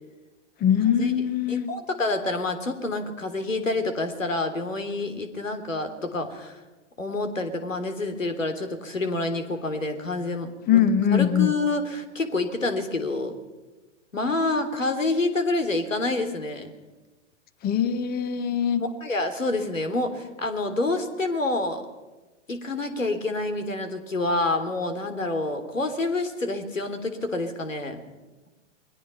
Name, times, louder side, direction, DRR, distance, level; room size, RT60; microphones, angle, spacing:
voice 1, 0.6-1.7 10.7-11.5 17.6-18.8, left 8 dB, 25° left, 12 dB, 1.4 m, -22 dB
voice 2, 1.5-6.6 7.0-10.8 11.1-13.4 14.1-16.7 19.0-21.8 22.5-28.0, left 2 dB, 90° left, 7 dB, 3.4 m, -28 dB
29.5 x 22.0 x 5.8 m, 1.1 s
figure-of-eight pair, 105°, 38 cm